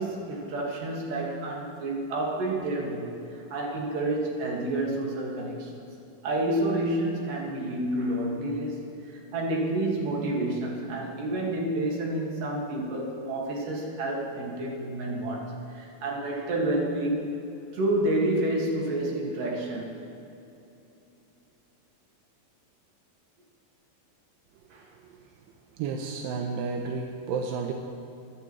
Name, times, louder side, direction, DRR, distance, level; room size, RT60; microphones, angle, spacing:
voice 1, 0.0-5.7 6.2-17.3 17.7-19.9 24.7-24.8, right 1 dB, 70° right, -2 dB, 3.3 m, -29 dB
voice 2, 25.8-27.7, right 5 dB, 90° right, 2 dB, 2.4 m, -32 dB
23.0 x 10.5 x 3.1 m, 2.8 s
omnidirectional pair, 4.0 m